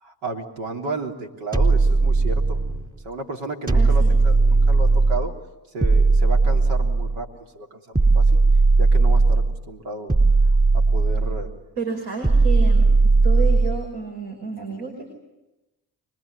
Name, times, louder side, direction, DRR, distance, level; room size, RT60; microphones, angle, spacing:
voice 1, 0.0-2.6 3.0-5.3 5.7-8.4 8.8-10.1 10.7-11.5, right 2 dB, 75° right, 2 dB, 3.4 m, -33 dB
sound 1, 1.5-2.8 3.7-5.3 5.8-7.2 7.9-9.6 10.1-11.5 12.2-13.8, right 3 dB, 20° right, 4.0 m, -17 dB
voice 2, 3.7-4.2 11.8-12.9 13.2-15.1, right 4 dB, 60° right, 2 dB, 5.4 m, -31 dB
25.5 x 21.5 x 9.6 m, 1.0 s
hypercardioid pair, 50°, 49 cm